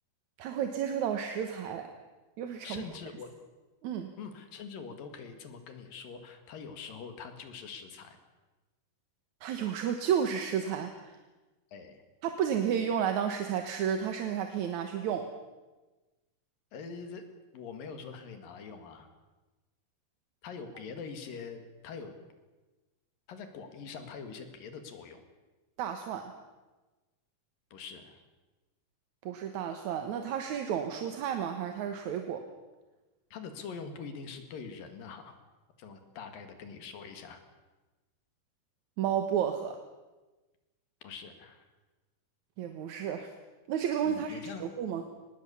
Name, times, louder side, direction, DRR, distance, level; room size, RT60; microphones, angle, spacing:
voice 1, 0.4-1.9 2.4-2.8 3.8-4.1 9.4-11.1 12.2-15.3 25.8-26.3 29.2-32.5 39.0-39.8 42.6-43.3 43.7-45.0, right 8 dB, 65° right, 6 dB, 2.4 m, -32 dB
voice 2, 2.6-3.3 4.2-8.2 11.7-12.0 16.7-17.2 17.5-19.1 20.4-22.2 23.3-25.2 27.7-28.2 33.3-35.4 35.8-37.4 41.0-41.7 44.0-44.7, left 5 dB, 85° left, 7 dB, 3.8 m, -44 dB
24.0 x 20.0 x 7.1 m, 1.2 s
omnidirectional pair, 3.9 m